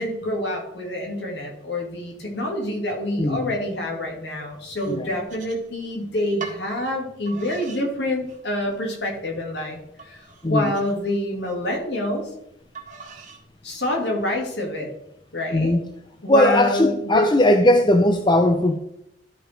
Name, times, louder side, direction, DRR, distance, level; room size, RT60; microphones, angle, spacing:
voice 1, 0.0-12.3 13.6-14.9 15.3-15.8 16.2-17.3, left 1 dB, 60° left, 2.4 m, -27 dB
voice 2, 3.2-3.6 4.9-5.1 10.4-10.7 15.5-15.8 16.3-18.8, left 1 dB, 25° left, 0.5 m, -18 dB
sound 1, 4.7-6.0 6.4-6.6 7.2-7.8 8.3-8.8 9.3-9.4 10.0-11.6 12.7-13.4 14.0-14.5, right 4 dB, 45° right, 1.8 m, -41 dB
12.0 x 5.0 x 4.5 m
head